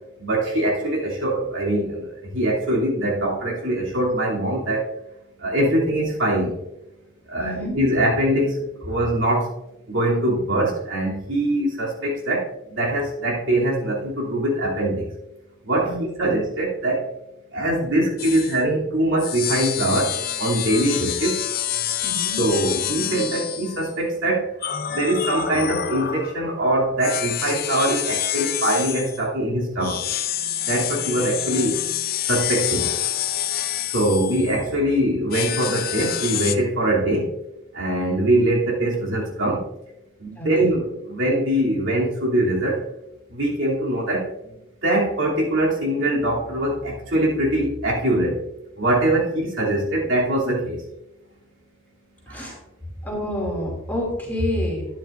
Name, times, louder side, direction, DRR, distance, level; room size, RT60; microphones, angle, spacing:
voice 1, 0.2-4.8 5.4-6.6 7.3-9.5 9.9-15.1 15.6-17.1 17.5-21.4 22.4-24.5 24.9-30.0 30.7-31.8 32.3-32.9 33.9-37.3 37.7-39.7 40.2-42.8 43.3-44.5 44.8-48.4 48.8-50.8 52.3-52.5, right 1 dB, 65° right, -4 dB, 3.0 m, -22 dB
voice 2, 7.4-7.8 15.8-16.4 22.0-22.4 40.3-40.8 52.3-52.6 53.0-54.9, left 1 dB, 10° left, -2 dB, 2.6 m, -28 dB
sound 1, 18.2-18.6 19.2-23.9 24.6-26.5 27.0-29.2 29.8-34.7 35.3-36.6, left 11 dB, 45° left, 0.5 m, -27 dB
12.5 x 9.6 x 2.6 m, 0.92 s
head